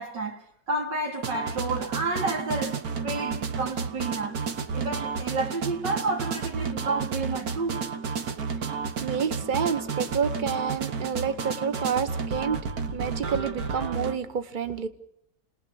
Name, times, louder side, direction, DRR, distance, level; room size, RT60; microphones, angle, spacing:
voice 1, 0.0-4.4 4.7-7.8, right 3 dB, 90° right, 3.3 m, -30 dB
sound 1, 1.2-14.2, right 5 dB, 60° right, 1.7 m, -32 dB
voice 2, 9.0-12.6 12.9-14.9, right 6 dB, 30° right, 1.2 m, -29 dB
30.0 x 20.5 x 7.1 m
omnidirectional pair, 1.9 m